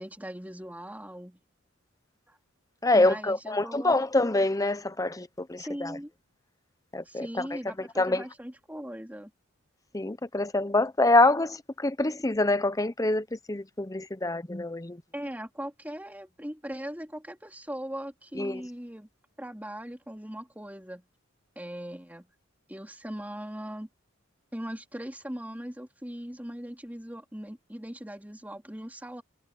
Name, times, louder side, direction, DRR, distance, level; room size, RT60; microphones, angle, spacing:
voice 1, 0.0-1.4 2.3-2.4 2.9-3.9 5.6-6.1 7.0-9.3 15.1-19.1 19.4-21.0 21.5-22.3 22.7-23.9 24.5-29.2, equal, 10° right, 3.2 m, -39 dB
voice 2, 2.8-6.0 6.9-7.6 8.0-8.2 9.9-15.0 18.3-18.6, left 2 dB, 15° left, 0.7 m, -26 dB
head